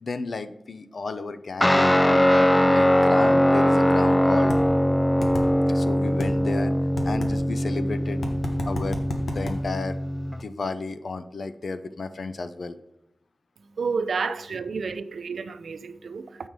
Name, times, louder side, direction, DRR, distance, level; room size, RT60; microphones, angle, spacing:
voice 1, 0.0-4.5 5.7-6.7 7.0-8.2 8.7-10.0 10.4-12.8 14.8-14.9, left 3 dB, 65° left, 0.6 m, -32 dB
Guitar, 1.6-10.4, equal, 15° left, 0.4 m, -21 dB
sound 1, 4.5-4.6 5.2-5.5 6.2-6.3 7.0-7.3 8.2-9.6, left 2 dB, 85° left, 1.3 m, -31 dB
voice 2, 13.8-16.3, right 5 dB, 90° right, 0.5 m, -30 dB
7.5 x 5.3 x 4.7 m
wide cardioid pair, 105°, 0 cm